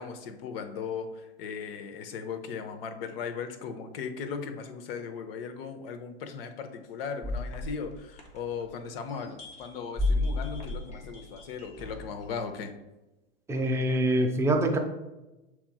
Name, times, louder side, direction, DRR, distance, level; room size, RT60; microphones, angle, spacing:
voice 1, 0.0-12.7, left 6 dB, 60° left, 8 dB, 0.7 m, -37 dB
sound 1, 7.2-8.8 9.2-12.2, left 2 dB, 20° left, 0.7 m, -33 dB
voice 2, 13.5-14.8, right 1 dB, 10° right, 3 dB, 0.4 m, -25 dB
6.8 x 3.0 x 2.3 m, 1.0 s
hypercardioid pair, 100°, 33 cm